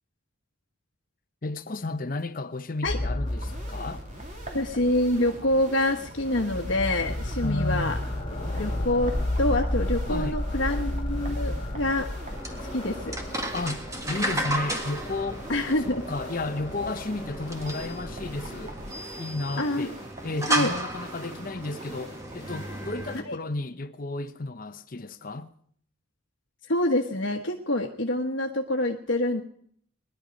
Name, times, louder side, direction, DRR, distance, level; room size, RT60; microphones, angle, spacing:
voice 1, 1.4-4.0 7.4-8.0 8.5-8.6 10.1-10.4 13.5-15.5 15.8-18.8 19.1-20.0 20.2-25.5, left 2 dB, 45° left, 0.8 m, -33 dB
sound 1, 2.9-19.1, left 1 dB, 25° left, 2.1 m, -33 dB
sound 2, 3.3-23.2, right 2 dB, 40° right, 3.2 m, -45 dB
voice 2, 4.5-8.0 8.5-9.1 9.4-12.1 12.7-13.2 15.5-16.0 19.6-19.9 20.5-20.7 23.2-23.4 26.7-29.4, left 1 dB, 70° left, 1.3 m, -26 dB
sound 3, 12.3-23.2, right 1 dB, 15° right, 1.7 m, -34 dB
21.0 x 11.5 x 5.2 m
head